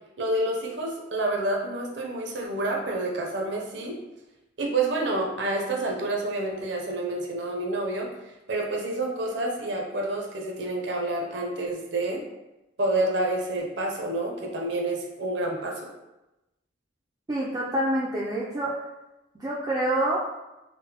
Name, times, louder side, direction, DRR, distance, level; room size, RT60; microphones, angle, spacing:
voice 1, 0.2-4.0 4.6-8.1 8.5-12.2 12.8-15.9, right 2 dB, 70° right, 0 dB, 0.6 m, -28 dB
voice 2, 17.3-18.8 19.3-20.2, right 1 dB, 20° right, -6 dB, 0.3 m, -27 dB
3.8 x 2.1 x 2.8 m, 0.98 s
head